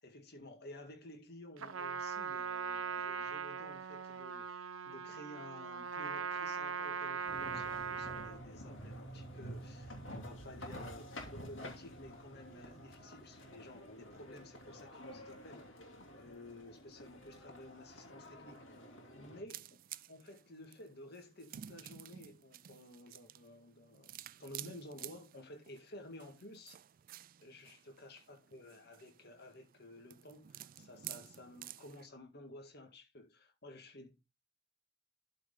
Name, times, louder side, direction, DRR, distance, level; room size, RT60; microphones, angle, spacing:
voice 1, 0.0-15.8 16.1-18.8 19.1-24.1 24.4-26.8 27.4-34.3, left 1 dB, 55° left, 1.9 m, -53 dB
Trumpet, 1.6-8.4, right 6 dB, 85° right, 0.8 m, -40 dB
sound 1, 7.2-19.4, equal, 70° left, 2.7 m, -50 dB
sound 2, 19.5-32.1, right 12 dB, 45° right, 0.4 m, -52 dB
12.5 x 4.7 x 3.8 m
head